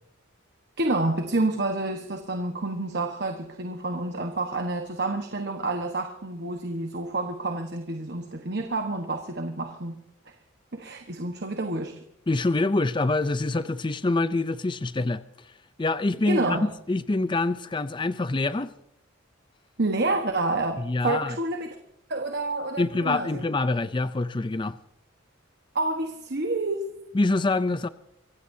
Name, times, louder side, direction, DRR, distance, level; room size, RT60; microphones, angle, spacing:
voice 1, 0.8-10.0 10.7-12.0 16.3-16.7 19.8-21.8 22.1-23.4 25.7-26.9, right 2 dB, 50° right, 5 dB, 1.3 m, -28 dB
voice 2, 12.3-15.5 15.8-18.7 20.8-21.4 22.8-24.8 27.1-27.9, left 2 dB, 25° left, 14 dB, 0.4 m, -25 dB
25.0 x 16.0 x 2.8 m, 0.77 s
head